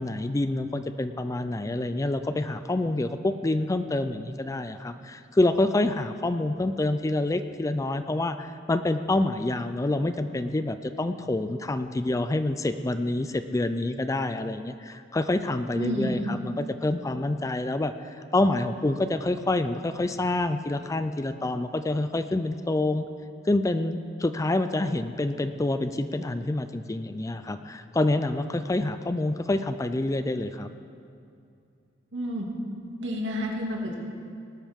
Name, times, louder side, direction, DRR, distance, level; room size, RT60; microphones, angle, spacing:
voice 1, 0.0-23.0 23.5-30.7, left 2 dB, 15° left, 10 dB, 0.4 m, -27 dB
voice 2, 15.7-16.2 32.1-32.5 33.0-33.9, equal, 75° right, -1 dB, 2.3 m, -30 dB
19.0 x 12.0 x 3.6 m, 2.5 s
head